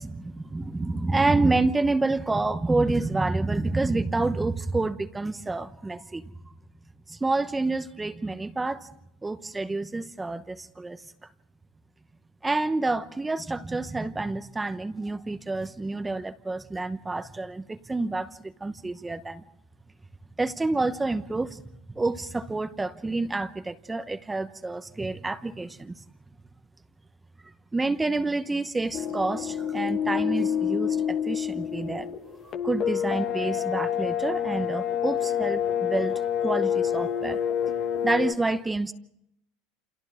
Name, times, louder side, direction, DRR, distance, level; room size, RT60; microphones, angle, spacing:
voice 1, 0.0-6.5 7.1-8.9 9.2-11.0 12.4-19.4 20.4-21.6 21.9-25.9 27.7-32.1 32.4-37.4 38.0-38.9, right 3 dB, 10° right, 10 dB, 1.0 m, -28 dB
sound 1, 28.9-38.3, left 9 dB, 40° left, 1.2 m, -28 dB
29.5 x 28.0 x 3.6 m, 0.76 s
supercardioid pair, 125°, 0 cm